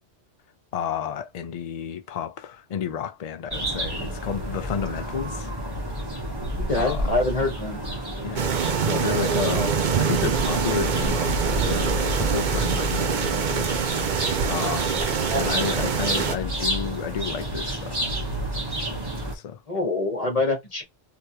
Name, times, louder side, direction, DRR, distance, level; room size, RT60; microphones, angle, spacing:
voice 1, 0.7-5.5 6.8-7.2 8.2-8.5 8.8-13.7 14.5-15.0 15.3-18.2 19.3-19.6 20.2-20.4, left 8 dB, 85° left, 0.3 m, -31 dB
sound 1, 3.5-19.4, equal, 20° right, 1.4 m, -30 dB
voice 2, 6.6-7.8 15.3-15.4 19.7-20.8, left 2 dB, 30° left, 1.4 m, -25 dB
sound 2, 8.4-16.4, right 6 dB, 50° right, 0.7 m, -25 dB
3.3 x 3.0 x 2.8 m
omnidirectional pair, 1.3 m